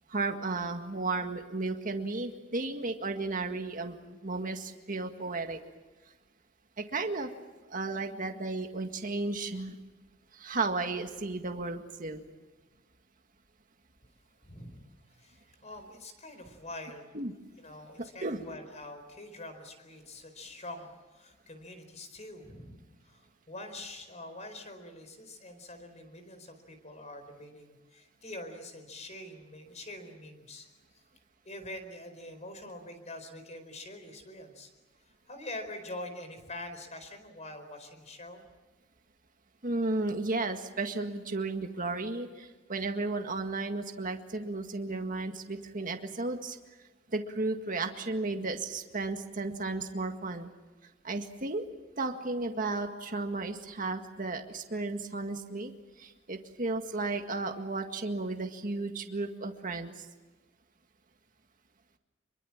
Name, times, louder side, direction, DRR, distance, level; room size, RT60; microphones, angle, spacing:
voice 1, 0.1-5.6 6.8-7.3 7.7-9.8 10.3-12.2 17.1-17.3 18.2-18.4 39.6-46.6 47.1-50.5 51.0-51.7 52.0-55.7 56.0-60.1, right 3 dB, 45° right, 5 dB, 1.9 m, -34 dB
voice 2, 14.4-14.8 15.1-17.1 17.6-30.7 31.4-34.7 35.3-38.4, left 1 dB, 35° left, 8 dB, 4.5 m, -45 dB
26.0 x 23.5 x 7.4 m, 1.2 s
head